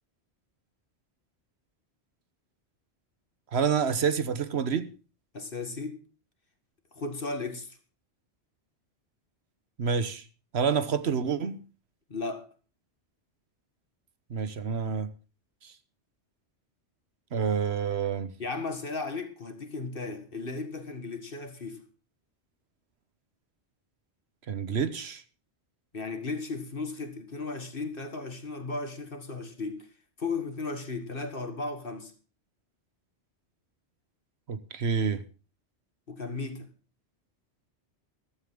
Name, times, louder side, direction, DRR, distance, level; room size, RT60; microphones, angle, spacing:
voice 1, 3.5-4.9 9.8-10.2 10.5-11.6 14.3-15.1 15.6-15.7 17.3-18.3 24.5-25.2 34.5-35.2, right 6 dB, 70° right, 1.3 m, -28 dB
voice 2, 5.3-6.0 6.9-7.8 12.1-12.5 18.4-21.8 25.9-29.9 30.2-32.1 36.1-36.7, left 3 dB, 55° left, 2.0 m, -35 dB
14.5 x 13.0 x 3.7 m
omnidirectional pair, 1.1 m